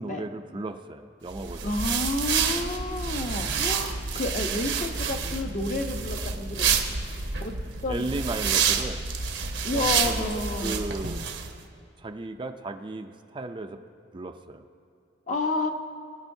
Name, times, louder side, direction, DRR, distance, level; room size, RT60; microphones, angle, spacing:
voice 1, 0.0-1.8 7.9-9.0 9.7-11.2 12.0-13.8 14.1-14.6, right 2 dB, 25° right, 6 dB, 0.4 m, -35 dB
sound 1, 1.3-11.5, right 6 dB, 80° right, 1.0 m, -28 dB
voice 2, 1.6-6.7 7.4-7.5 7.8-8.1 9.6-10.9 15.3-15.7, left 2 dB, 45° left, 4 dB, 0.8 m, -30 dB
22.0 x 9.8 x 2.7 m, 2.6 s
head